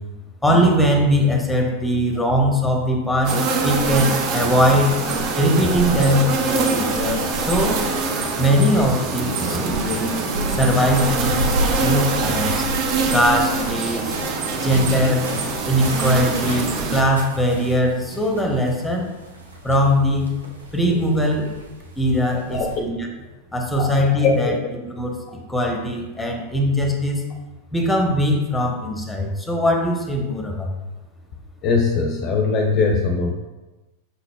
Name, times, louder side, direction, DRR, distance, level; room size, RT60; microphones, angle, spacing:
voice 1, 0.4-5.0 5.4-7.8 8.4-10.2 10.5-12.7 13.1-14.2 14.6-15.3 15.7-19.1 19.6-20.3 20.7-21.5 22.0-23.1 23.5-24.5 24.8-27.2 27.7-30.7, equal, 5° left, 1 dB, 0.8 m, -20 dB
sound 1, 3.2-17.0, right 4 dB, 40° right, 0.6 m, -24 dB
sound 2, 10.3-22.8, equal, 75° right, 0.8 m, -32 dB
voice 2, 22.5-22.8 24.2-24.3 31.6-33.3, left 4 dB, 35° left, 2 dB, 0.5 m, -20 dB
5.7 x 3.9 x 2.2 m, 1.1 s
figure-of-eight pair, 90°, 0 cm